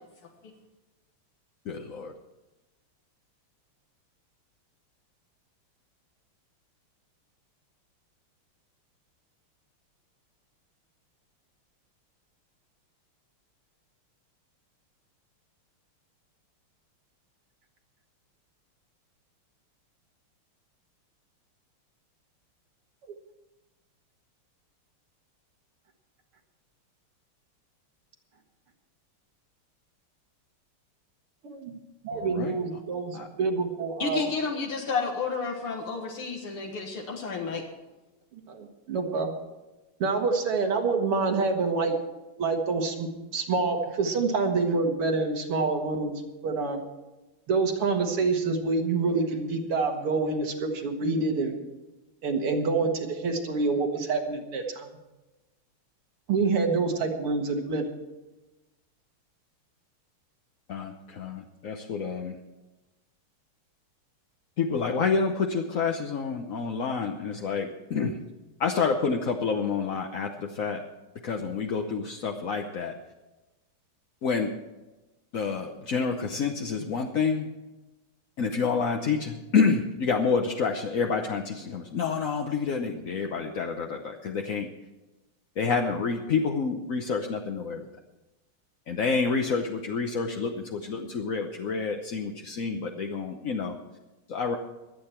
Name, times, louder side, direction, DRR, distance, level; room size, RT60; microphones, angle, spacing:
voice 1, 1.6-2.1 32.1-32.6 33.1-33.3 60.7-62.3 64.6-68.2 68.6-70.8 71.2-72.9 74.2-74.5 75.3-77.5 78.4-84.7 85.6-87.9 88.9-93.8 94.3-94.6, left 5 dB, 55° left, 3 dB, 1.0 m, -28 dB
voice 2, 31.4-31.8 32.0-34.2 38.5-39.3 40.0-41.9 42.4-46.1 46.4-46.8 47.5-51.6 52.2-54.9 56.3-57.9, right 4 dB, 85° right, 3 dB, 2.6 m, -27 dB
voice 3, 34.0-37.6, left 5 dB, 75° left, 0 dB, 2.4 m, -31 dB
24.0 x 8.6 x 4.4 m, 1.1 s
omnidirectional pair, 2.4 m